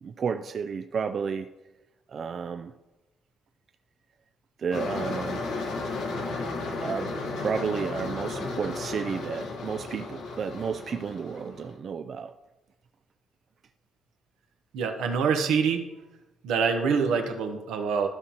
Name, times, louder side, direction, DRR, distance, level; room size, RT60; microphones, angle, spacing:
voice 1, 0.0-1.5 2.1-2.7 4.6-5.4 6.8-12.3, right 6 dB, 50° right, 7 dB, 0.3 m, -32 dB
sound 1, 4.7-11.8, left 3 dB, 85° left, 1.2 m, -34 dB
voice 2, 14.7-15.9 16.4-18.1, right 6 dB, 90° right, 5 dB, 0.9 m, -25 dB
13.0 x 5.5 x 2.9 m, 1.1 s
cardioid pair, 90°, 0 cm